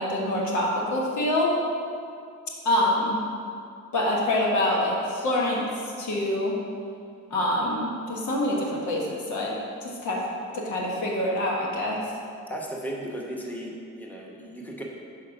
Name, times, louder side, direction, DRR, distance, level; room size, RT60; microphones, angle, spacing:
voice 1, 0.0-1.6 2.6-3.2 3.9-5.6 6.0-6.6 7.3-9.5 9.8-10.2 10.5-12.0, left 1 dB, 75° left, -2 dB, 1.4 m, -25 dB
voice 2, 12.5-14.8, right 1 dB, 5° left, -2 dB, 1.0 m, -35 dB
6.4 x 4.3 x 5.3 m, 2.4 s
cardioid pair, 90°, 30 cm